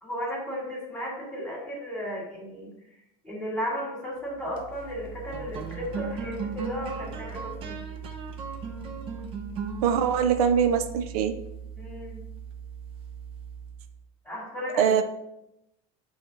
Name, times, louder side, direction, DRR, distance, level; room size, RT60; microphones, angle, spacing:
voice 1, 0.0-2.7 3.2-7.8 11.7-12.2 14.2-15.0, equal, 5° left, -4 dB, 2.3 m, -34 dB
sound 1, 4.3-13.9, right 6 dB, 30° right, 0.7 m, -37 dB
voice 2, 9.8-11.3 14.8-15.0, right 8 dB, 80° right, 9 dB, 0.6 m, -22 dB
8.4 x 3.3 x 4.0 m, 0.85 s
supercardioid pair, 165°, 18 cm